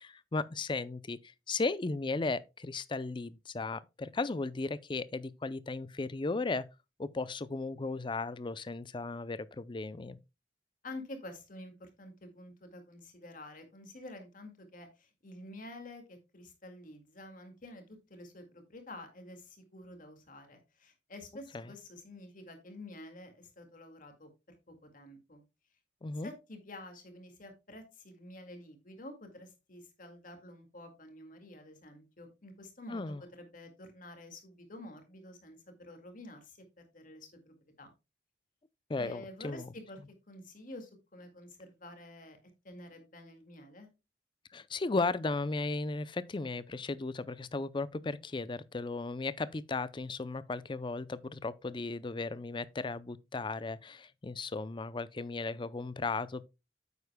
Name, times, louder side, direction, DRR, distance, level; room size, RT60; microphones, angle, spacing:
voice 1, 0.0-6.7 7.0-10.2 21.5-21.6 26.0-26.3 32.9-33.2 38.9-39.7 44.5-56.5, left 3 dB, 30° left, 0.5 m, -36 dB
voice 2, 10.8-24.3 24.7-25.4 26.2-36.6 36.9-37.9 39.0-40.0 40.3-42.4 42.6-43.9, left 1 dB, 50° left, 2.0 m, -49 dB
9.5 x 8.1 x 2.2 m
head